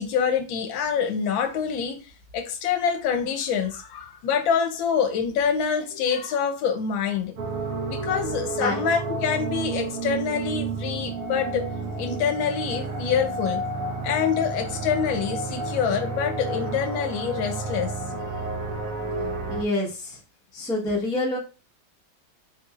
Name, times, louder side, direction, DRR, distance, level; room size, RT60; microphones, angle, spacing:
voice 1, 0.0-7.3 7.9-11.7 12.0-13.6 14.0-17.9, left 7 dB, 75° left, 1.3 m, -26 dB
sound 1, 7.4-19.6, right 3 dB, 70° right, 0.8 m, -31 dB
voice 2, 19.5-20.2 20.5-21.4, left 2 dB, 5° left, 0.4 m, -27 dB
3.9 x 2.9 x 2.4 m
omnidirectional pair, 2.2 m